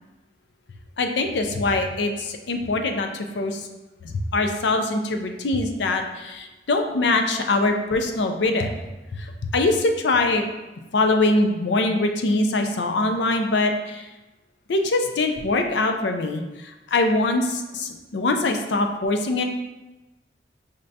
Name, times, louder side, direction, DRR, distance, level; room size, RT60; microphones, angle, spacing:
voice 1, 1.0-3.7 4.0-8.8 9.1-10.4 10.9-14.1 14.7-19.4, left 2 dB, 80° left, 5 dB, 0.5 m, -23 dB
5.2 x 3.3 x 2.7 m, 1.1 s
head